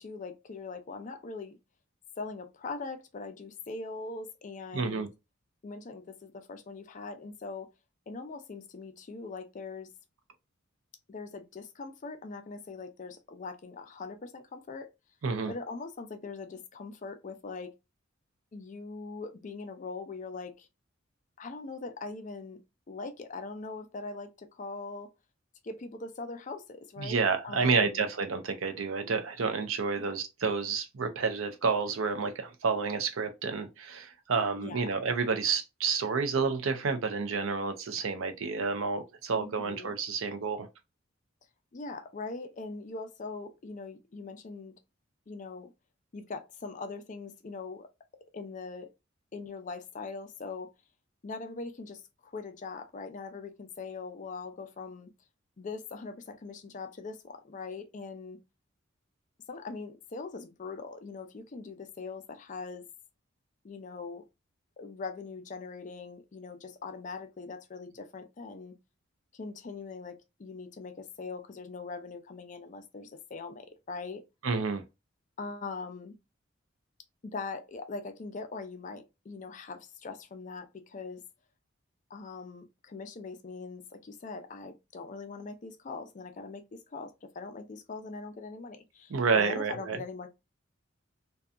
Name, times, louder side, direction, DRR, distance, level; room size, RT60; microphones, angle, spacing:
voice 1, 0.0-1.6 2.2-5.1 5.6-7.7 8.1-9.9 11.1-14.9 15.5-17.7 18.5-20.7 21.4-22.6 22.9-25.1 25.6-28.1 30.0-30.2 34.6-35.0 39.3-39.9 41.7-44.7 45.3-45.7 46.1-47.9 48.3-48.9 49.3-50.7 51.2-55.1 55.6-58.4 59.5-62.8 63.6-64.2 64.8-68.8 69.3-74.2 75.4-76.1 77.2-81.2 82.1-90.3, left 4 dB, 40° left, 0.4 m, -41 dB
voice 2, 4.7-5.1 15.2-15.5 27.0-40.7 74.4-74.8 89.1-90.0, right 5 dB, 85° right, 0.5 m, -30 dB
2.7 x 2.2 x 2.4 m
head